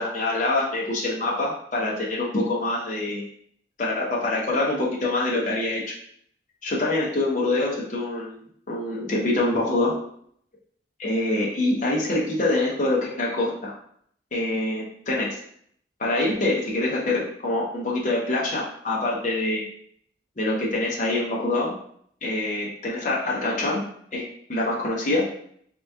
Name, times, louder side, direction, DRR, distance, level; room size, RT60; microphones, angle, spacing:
voice 1, 0.0-3.2 3.8-5.8 6.6-10.0 11.0-13.7 14.3-15.4 16.0-19.6 20.4-21.7 22.2-23.9 24.1-25.3, left 2 dB, 40° left, -4 dB, 0.7 m, -25 dB
3.5 x 2.9 x 3.5 m, 0.66 s
head